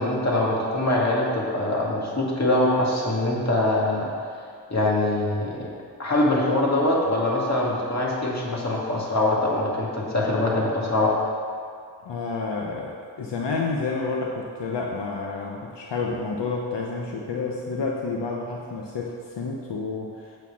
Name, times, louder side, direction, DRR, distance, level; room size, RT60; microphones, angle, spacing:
voice 1, 0.0-4.1 4.7-5.7 6.0-11.1, left 1 dB, 40° left, -4 dB, 2.1 m, -23 dB
voice 2, 12.0-20.4, left 4 dB, 80° left, -1 dB, 0.9 m, -30 dB
8.3 x 4.5 x 7.1 m, 2.2 s
cardioid pair, 65°, 42 cm